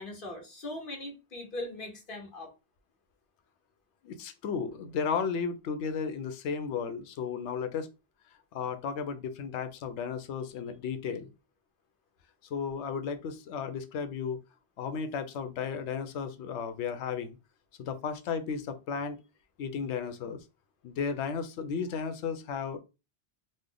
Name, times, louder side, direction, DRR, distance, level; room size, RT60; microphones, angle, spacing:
voice 1, 0.0-2.5, left 1 dB, 50° left, 1.3 m, -40 dB
voice 2, 4.0-7.9 8.5-11.3 12.5-14.4 14.8-17.4 17.8-19.2 19.6-20.4 20.8-22.8, left 6 dB, 90° left, 0.9 m, -34 dB
3.1 x 2.0 x 3.8 m
omnidirectional pair, 1.1 m